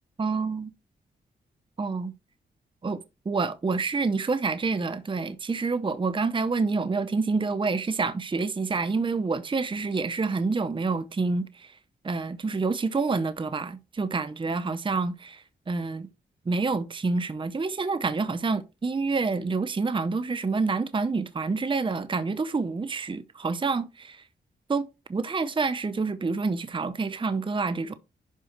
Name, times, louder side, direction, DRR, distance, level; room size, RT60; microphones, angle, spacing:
voice 1, 0.2-0.7 1.8-2.1 2.8-3.0 3.3-11.7 12.0-16.1 16.5-24.2 24.7-27.9, right 4 dB, 25° right, 0.7 m, -28 dB
11.0 x 4.9 x 3.0 m
cardioid pair, 60°, 19 cm